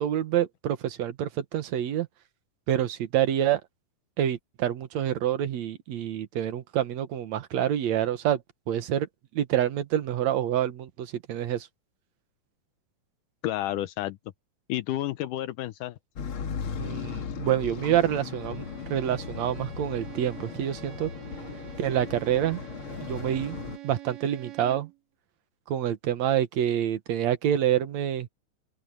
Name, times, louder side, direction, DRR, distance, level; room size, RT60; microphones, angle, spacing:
voice 1, 0.0-2.1 2.7-3.6 4.2-8.4 8.7-9.1 9.3-11.7 16.8-21.1 21.8-22.6 23.0-23.6 23.8-24.9 25.7-28.3, right 10 dB, 65° right, 2.3 m, -27 dB
voice 2, 13.4-14.2 14.7-16.0, left 14 dB, 80° left, 2.3 m, -30 dB
sound 1, 16.2-23.8, left 6 dB, 50° left, 1.9 m, -37 dB
Bowed string instrument, 18.1-25.0, right 14 dB, 80° right, 3.6 m, -46 dB
open air
omnidirectional pair, 3.7 m